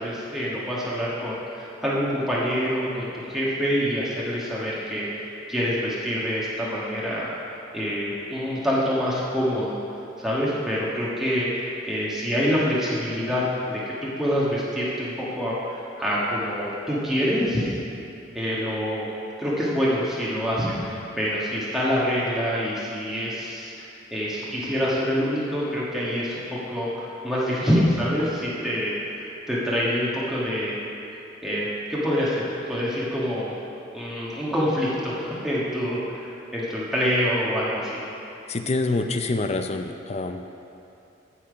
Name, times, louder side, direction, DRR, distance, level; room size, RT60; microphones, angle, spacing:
voice 1, 0.0-7.3 7.7-9.8 10.2-17.7 18.3-19.1 19.4-30.8 31.4-33.5 33.9-36.3 36.5-38.0, equal, ahead, -8 dB, 1.5 m, -26 dB
voice 2, 38.5-40.4, left 2 dB, 35° left, 6 dB, 0.5 m, -26 dB
15.0 x 5.8 x 5.1 m, 2.8 s
head